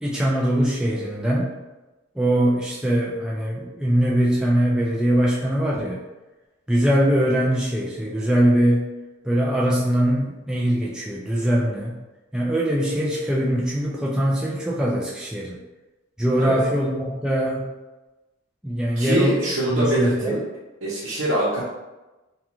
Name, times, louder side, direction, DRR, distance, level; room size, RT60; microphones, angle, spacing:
voice 1, 0.0-1.5 2.2-6.0 6.7-8.8 9.2-12.0 12.3-15.6 16.2-17.7 18.6-19.4 19.7-20.3, equal, 5° right, -6 dB, 0.3 m, -22 dB
voice 2, 18.9-20.4 20.8-21.6, right 1 dB, 75° right, -9 dB, 0.7 m, -23 dB
2.4 x 2.3 x 2.9 m, 1.1 s
head